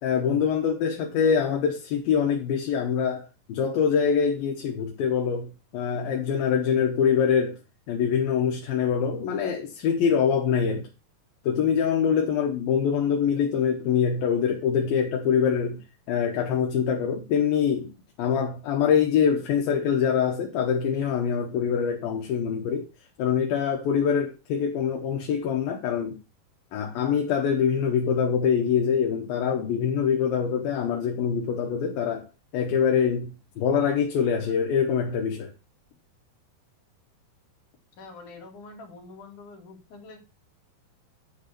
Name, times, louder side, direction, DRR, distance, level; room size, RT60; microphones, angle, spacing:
voice 1, 0.0-7.6 7.9-10.9 11.4-17.9 18.2-22.9 23.2-26.2 26.7-32.3 32.5-35.5, left 7 dB, 75° left, 2.7 m, -24 dB
voice 2, 38.0-40.2, left 3 dB, 55° left, 3.7 m, -45 dB
10.0 x 3.6 x 6.7 m
omnidirectional pair, 4.4 m